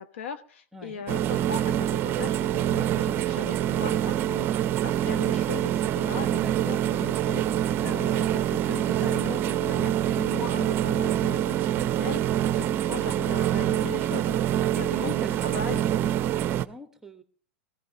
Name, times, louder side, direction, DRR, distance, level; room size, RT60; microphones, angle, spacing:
voice 1, 0.0-15.8, left 7 dB, 80° left, 10 dB, 1.1 m, -39 dB
voice 2, 0.7-1.1 6.4-6.7 12.5-12.8 14.7-17.2, equal, 5° right, 9 dB, 1.3 m, -42 dB
sound 1, 1.1-16.6, right 11 dB, 40° right, 0.6 m, -25 dB
20.5 x 15.0 x 2.9 m, 0.42 s
hypercardioid pair, 110°, 6 cm